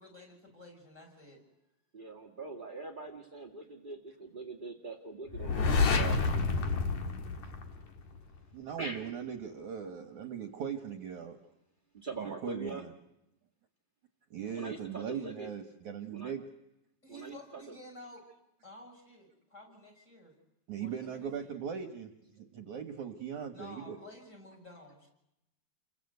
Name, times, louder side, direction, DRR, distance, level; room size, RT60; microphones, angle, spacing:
voice 1, 0.0-1.4 15.1-15.3 17.0-18.2 18.6-20.3 20.8-21.6 23.5-25.1, left 1 dB, 15° left, 4 dB, 7.4 m, -52 dB
voice 2, 1.9-6.8 8.8-9.0 11.9-12.8 14.5-15.5 16.1-16.3 17.1-17.7, right 3 dB, 20° right, 1 dB, 1.3 m, -43 dB
sound 1, 5.3-8.2, left 4 dB, 55° left, 2.9 m, -29 dB
voice 3, 8.5-11.4 12.2-12.9 14.3-16.4 20.7-24.0, right 7 dB, 60° right, 5 dB, 2.4 m, -39 dB
29.5 x 23.0 x 8.1 m, 0.86 s
omnidirectional pair, 4.6 m